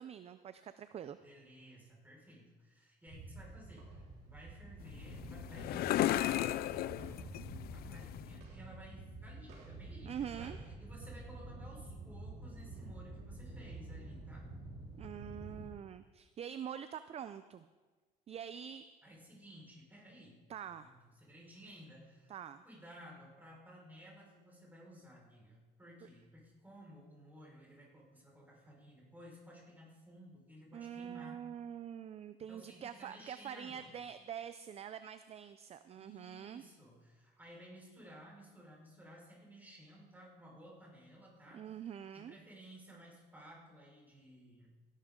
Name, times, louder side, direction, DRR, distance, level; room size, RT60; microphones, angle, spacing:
voice 1, 0.0-1.2 10.1-10.6 15.0-17.7 18.3-18.8 20.5-20.9 22.3-22.6 26.0-26.1 30.7-36.6 41.5-42.4, right 9 dB, 40° right, 12 dB, 0.4 m, -45 dB
voice 2, 1.2-3.9 4.2-7.4 7.7-14.5 19.0-22.3 22.6-31.4 32.4-33.9 35.9-41.7 42.1-44.7, equal, 10° right, -4 dB, 5.0 m, -56 dB
sound 1, 3.1-15.7, right 2 dB, 70° right, 4.1 m, -49 dB
sound 2, 4.8-8.4, left 14 dB, 65° left, 0.4 m, -35 dB
17.0 x 12.0 x 3.8 m, 1.3 s
cardioid pair, 110°, 17 cm